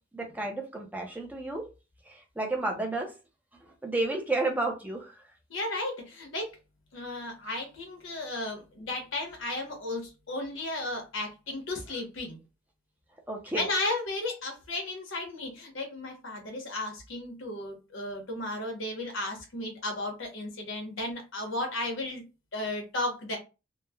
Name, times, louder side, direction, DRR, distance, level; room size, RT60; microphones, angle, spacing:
voice 1, 0.1-1.7 2.1-3.1 3.8-5.1 13.3-13.7, right 2 dB, 10° right, 0.4 m, -31 dB
voice 2, 5.5-6.5 6.9-12.4 13.5-22.2 22.5-23.4, left 2 dB, 80° left, 1.0 m, -34 dB
3.0 x 2.1 x 2.2 m
head